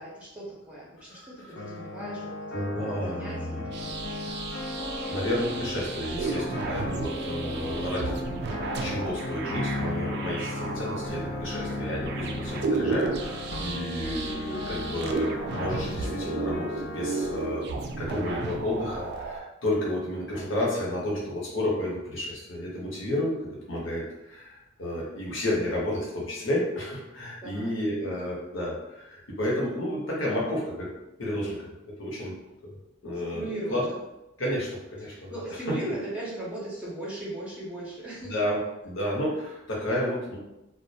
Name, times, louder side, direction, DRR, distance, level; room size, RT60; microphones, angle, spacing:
voice 1, 0.0-2.2 2.8-4.3 27.4-27.7 33.3-34.0 35.0-38.4, right 1 dB, 5° right, -7 dB, 0.6 m, -38 dB
voice 2, 1.1-1.7 2.5-3.6 5.1-8.2 8.8-17.7 18.0-23.4 23.7-30.9 31.2-32.3 32.6-32.8 33.0-33.4 33.7-33.8 34.4-35.7 38.2-38.6 38.8-40.4, left 1 dB, 75° left, -5 dB, 0.9 m, -31 dB
sound 1, 1.6-17.5, left 2 dB, 60° left, 0.4 m, -35 dB
sound 2, 3.7-19.4, right 4 dB, 60° right, 0.3 m, -34 dB
2.4 x 2.1 x 2.7 m, 0.93 s
head